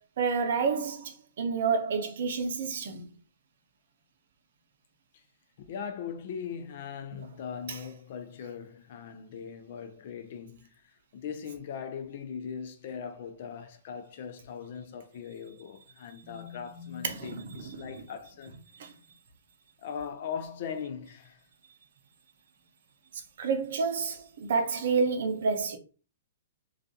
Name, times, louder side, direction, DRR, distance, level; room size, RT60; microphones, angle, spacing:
voice 1, 0.2-3.1 7.7-7.8 16.2-18.0 18.8-18.9 23.4-25.8, right 5 dB, 65° right, 0.6 m, -30 dB
voice 2, 5.6-10.7 11.1-18.5 19.8-21.4, left 7 dB, 55° left, 0.5 m, -40 dB
2.3 x 2.3 x 2.6 m
hypercardioid pair, 135°, 0 cm